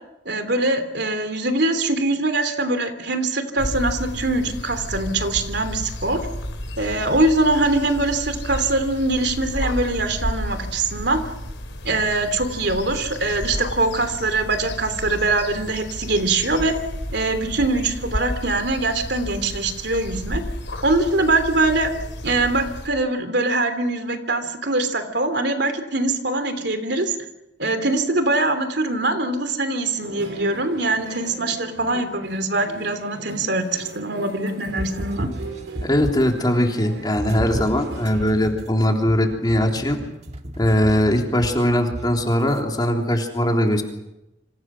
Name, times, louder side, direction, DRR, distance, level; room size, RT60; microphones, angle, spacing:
voice 1, 0.2-6.2 6.8-11.2 11.8-16.7 17.1-20.4 20.8-21.9 22.2-27.1 27.6-35.3, right 2 dB, 65° right, 8 dB, 3.1 m, -23 dB
sound 1, 3.6-22.9, left 1 dB, 85° left, 4.2 m, -32 dB
sound 2, 30.0-38.2, right 2 dB, 80° right, 5.9 m, -40 dB
sound 3, 34.7-36.4 37.2-42.6, right 1 dB, 35° right, 1.8 m, -33 dB
voice 2, 35.8-40.0 40.6-43.8, equal, 25° left, 2 dB, 3.5 m, -20 dB
28.0 x 26.5 x 6.2 m, 0.92 s
head